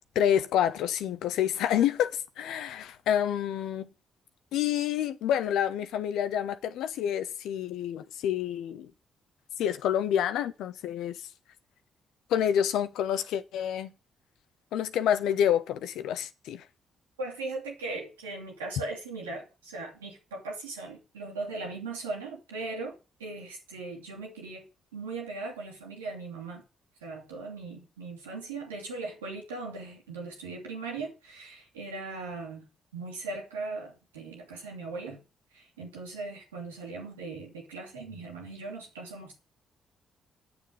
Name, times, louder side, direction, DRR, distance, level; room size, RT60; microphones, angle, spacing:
voice 1, 0.1-3.9 4.5-8.9 9.6-11.2 12.3-13.9 14.7-16.6, left 10 dB, 70° left, 0.8 m, -28 dB
voice 2, 17.2-24.7 24.9-26.6 27.0-32.7 32.9-35.2 35.5-39.4, right 3 dB, 90° right, 2.2 m, -39 dB
8.5 x 7.0 x 7.7 m
hypercardioid pair, 45°, 0 cm